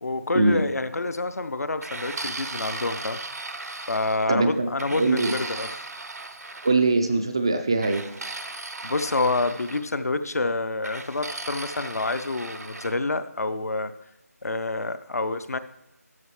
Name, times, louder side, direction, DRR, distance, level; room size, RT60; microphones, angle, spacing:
voice 1, 0.0-3.2 3.9-5.8 8.8-13.9 14.4-15.6, left 2 dB, 70° left, 11 dB, 0.7 m, -28 dB
sound 1, 1.8-4.3 4.8-6.7 7.8-9.8 10.8-13.0, right 2 dB, 75° right, 0.9 m, -36 dB
voice 2, 4.3-5.3 6.6-8.0, right 3 dB, 15° right, 7 dB, 0.3 m, -22 dB
12.5 x 6.6 x 3.2 m, 0.93 s
figure-of-eight pair, 170°, 9 cm